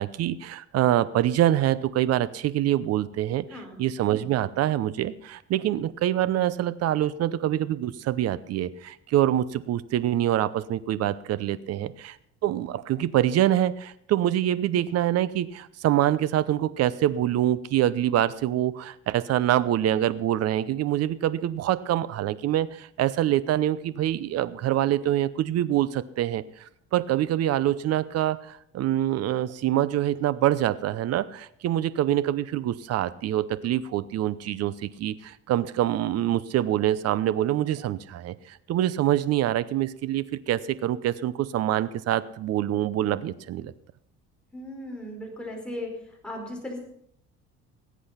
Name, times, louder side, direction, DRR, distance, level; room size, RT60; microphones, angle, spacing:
voice 1, 0.0-12.2 12.4-43.7, right 12 dB, 55° right, 17 dB, 0.8 m, -25 dB
voice 2, 44.5-45.9 46.2-46.8, left 1 dB, 5° left, 0 dB, 4.6 m, -36 dB
19.5 x 8.7 x 5.8 m, 0.70 s
cardioid pair, 125°, 29 cm